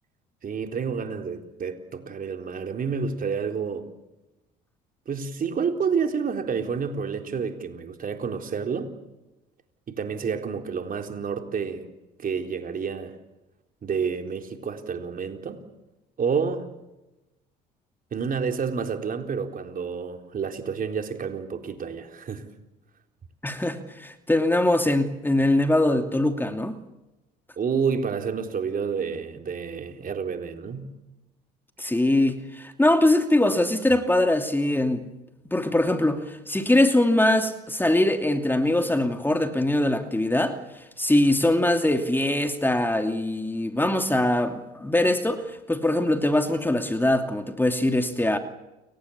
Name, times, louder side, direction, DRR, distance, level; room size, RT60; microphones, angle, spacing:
voice 1, 0.4-3.9 5.1-8.9 9.9-11.9 12.2-13.1 13.8-15.6 16.2-16.7 18.1-22.5 27.6-30.9, right 6 dB, 45° right, 5 dB, 3.9 m, -29 dB
voice 2, 23.4-26.7 31.8-35.1 35.5-40.6 41.0-48.4, left 1 dB, 10° left, 6 dB, 2.7 m, -22 dB
30.0 x 23.5 x 7.3 m, 1.0 s
hypercardioid pair, 65°, 21 cm